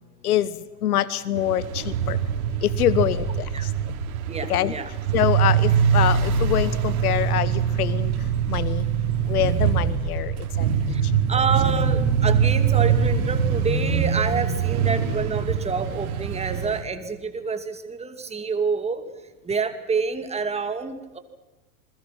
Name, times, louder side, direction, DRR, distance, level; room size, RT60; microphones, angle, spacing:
voice 1, 0.2-2.2 2.6-3.7 4.5-4.7 5.1-8.1 8.5-8.9 9.3-10.7 11.0-11.5, left 12 dB, 85° left, 17 dB, 1.2 m, -25 dB
Cars and motorbikes passes, 1.4-16.8, right 7 dB, 75° right, 4.2 m, -23 dB
voice 2, 4.3-4.9 10.9-19.0 19.4-21.2, right 4 dB, 15° right, 8 dB, 2.5 m, -28 dB
28.5 x 21.5 x 6.0 m, 1.1 s
hypercardioid pair, 120°, 43 cm